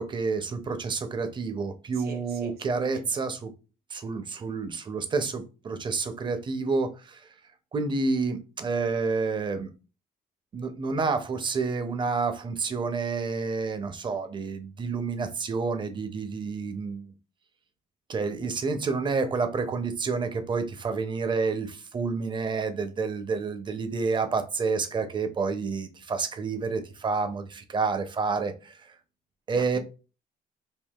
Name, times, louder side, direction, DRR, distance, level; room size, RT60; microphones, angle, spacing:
voice 1, 0.0-3.5 3.9-7.2 7.7-9.7 10.5-17.1 18.1-28.9 29.5-29.8, right 4 dB, 30° right, 0.5 m, -29 dB
voice 2, 1.9-3.3 29.5-29.8, right 5 dB, 65° right, 0.9 m, -44 dB
3.6 x 2.3 x 2.3 m
cardioid pair, 110°, 17 cm